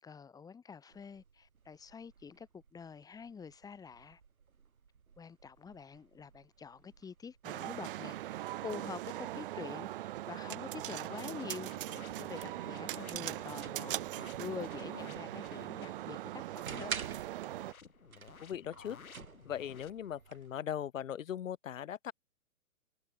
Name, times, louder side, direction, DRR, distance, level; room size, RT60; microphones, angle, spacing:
voice 1, 0.0-4.2 5.2-14.0 14.3-16.9, left 6 dB, 10° left, 4.9 m, -47 dB
sound 1, 0.9-20.6, right 6 dB, 90° right, 4.9 m, -52 dB
sound 2, 7.4-17.7, right 14 dB, 40° right, 2.2 m, -40 dB
sound 3, 10.8-16.0 17.4-19.9, left 6 dB, 90° left, 4.5 m, -55 dB
voice 2, 18.4-19.0 19.4-22.1, left 9 dB, 65° left, 1.5 m, -39 dB
hypercardioid pair, 150°, 41 cm